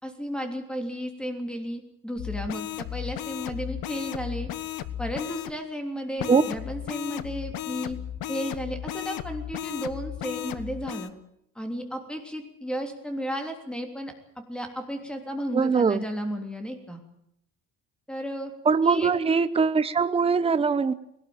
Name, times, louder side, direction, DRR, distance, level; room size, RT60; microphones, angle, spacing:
voice 1, 0.0-4.5 5.0-8.0 8.3-11.1 11.5-14.1 14.5-17.0 18.1-18.5 18.8-19.1, equal, 5° left, 4 dB, 3.2 m, -33 dB
sound 1, 2.2-5.6 6.2-11.1, left 12 dB, 85° left, 1.4 m, -35 dB
voice 2, 15.5-16.1 18.7-20.9, right 5 dB, 15° right, 11 dB, 0.9 m, -22 dB
21.0 x 18.0 x 8.8 m, 0.77 s
cardioid pair, 165°, 35 cm